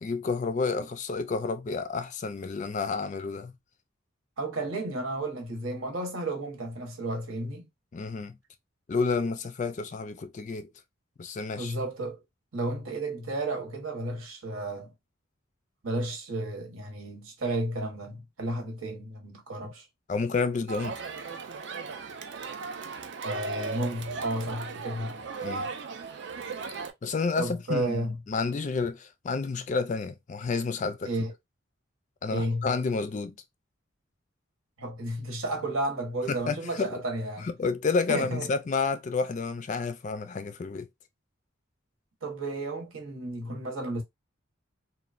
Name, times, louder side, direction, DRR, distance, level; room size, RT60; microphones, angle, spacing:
voice 1, 0.0-3.5 7.9-8.4 8.9-10.7 11.2-11.7 20.1-21.0 25.4-25.7 27.0-31.1 32.2-33.4 36.3-37.0 37.4-40.9, left 4 dB, 35° left, 0.3 m, -30 dB
voice 2, 4.4-7.6 11.5-12.2 12.5-14.9 15.8-19.8 23.2-25.2 27.4-28.2 31.1-31.3 32.3-32.7 34.8-37.5 38.1-38.5 42.2-44.0, right 1 dB, 85° right, 1.0 m, -32 dB
Crowd, 20.7-26.9, right 5 dB, 55° right, 0.4 m, -37 dB
3.1 x 2.2 x 2.4 m
head